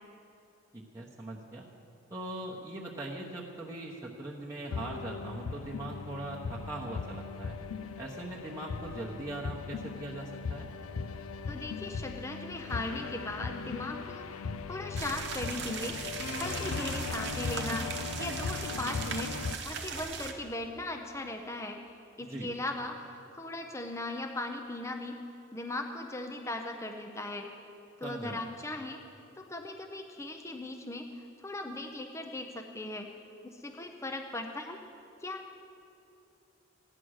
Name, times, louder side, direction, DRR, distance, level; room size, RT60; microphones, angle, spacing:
voice 1, 0.7-1.6 2.1-7.6 8.0-10.7 22.3-22.5 28.0-28.4, right 1 dB, 15° right, -5 dB, 1.0 m, -40 dB
sound 1, 4.7-19.6, left 5 dB, 80° left, 0.5 m, -38 dB
voice 2, 11.5-14.4 14.7-21.8 22.2-27.5 28.0-29.0 29.4-33.1 33.5-34.8 35.2-35.4, left 2 dB, 15° left, 4 dB, 0.6 m, -38 dB
sound 2, 15.0-20.3, right 6 dB, 55° right, 0.9 m, -39 dB
15.0 x 10.0 x 6.4 m, 2.8 s
head